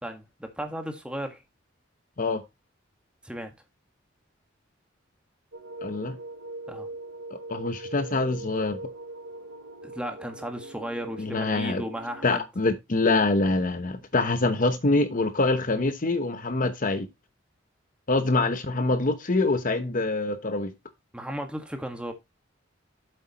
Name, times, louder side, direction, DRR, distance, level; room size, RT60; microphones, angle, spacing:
voice 1, 0.0-1.4 3.2-3.5 6.7-6.9 9.8-12.4 21.1-22.1, equal, 5° right, 1.6 m, -35 dB
sound 1, 5.5-12.4, right 2 dB, 70° right, 1.3 m, -41 dB
voice 2, 5.8-6.2 7.5-8.8 11.2-11.8 12.2-17.1 18.1-20.7, left 2 dB, 45° left, 0.9 m, -25 dB
8.1 x 7.8 x 3.0 m
head